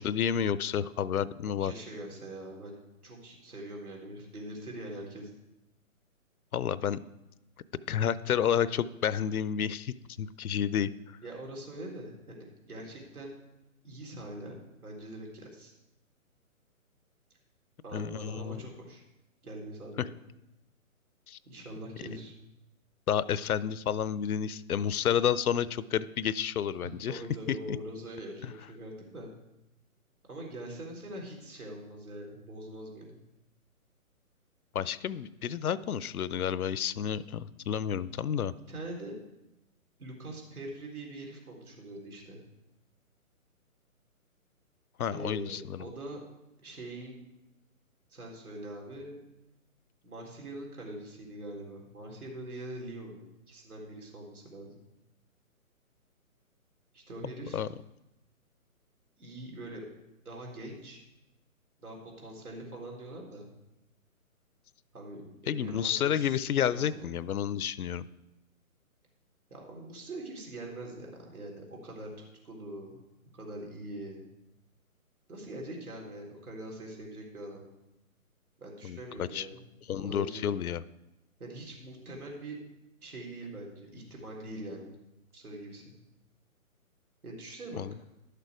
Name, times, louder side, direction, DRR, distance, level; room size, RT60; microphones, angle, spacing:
voice 1, 0.0-1.7 6.5-7.0 7.9-10.9 17.9-18.6 20.0-20.1 21.3-21.4 23.1-27.2 27.7-27.8 28.4-28.5 34.7-38.5 45.0-45.9 57.5-57.7 65.5-68.1 78.8-79.5 79.9-80.8 87.8-87.9, left 9 dB, 80° left, 18 dB, 0.6 m, -30 dB
voice 2, 1.4-5.3 11.2-13.3 13.8-15.7 17.8-19.0 19.4-20.1 21.5-22.3 26.8-29.3 30.2-33.2 38.7-39.1 40.0-42.4 45.1-46.2 46.6-47.2 48.1-49.2 50.0-53.2 53.5-54.8 56.9-57.6 59.2-59.9 60.3-61.0 61.8-63.5 64.9-66.4 66.7-67.0 69.5-73.0 73.3-74.2 75.3-77.6 78.6-79.6 80.0-80.4 81.4-82.6 83.0-85.0 85.3-85.9 87.2-87.8, right 1 dB, 85° right, -1 dB, 3.6 m, -43 dB
11.5 x 6.8 x 4.8 m, 0.92 s
hypercardioid pair, 150°, 43 cm